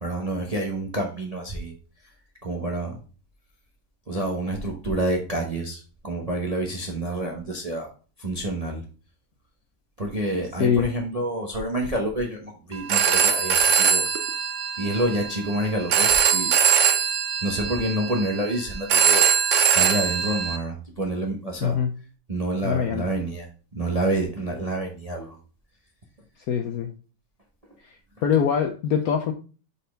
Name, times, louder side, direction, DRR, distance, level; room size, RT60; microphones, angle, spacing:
voice 1, 0.0-1.7 2.4-3.0 4.1-7.9 8.2-8.8 10.0-14.1 14.8-16.5 17.4-19.3 19.7-21.8 22.3-25.4, right 1 dB, 35° right, 1 dB, 0.6 m, -28 dB
Telephone, 12.7-20.6, right 7 dB, 70° right, 0.7 m, -22 dB
voice 2, 21.6-21.9 22.6-23.0 26.5-26.9 28.2-29.3, left 7 dB, 70° left, 5 dB, 0.9 m, -23 dB
5.4 x 4.2 x 5.1 m, 0.36 s
omnidirectional pair, 2.1 m